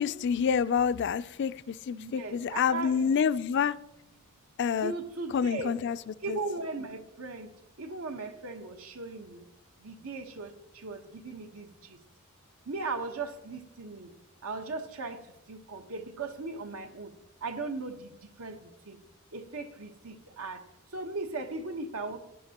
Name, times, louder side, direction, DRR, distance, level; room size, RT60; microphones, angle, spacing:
voice 1, 0.0-3.8 4.6-4.9 5.3-6.0 6.3-6.4, left 7 dB, 55° left, 15 dB, 0.4 m, -27 dB
voice 2, 1.9-3.1 4.8-5.8 6.2-7.5 7.8-9.4 9.8-12.0 12.7-14.1 14.4-17.1 17.4-19.0 19.3-20.6 20.9-22.2, right 3 dB, 90° right, 6 dB, 1.2 m, -38 dB
17.0 x 10.0 x 2.9 m, 0.90 s
head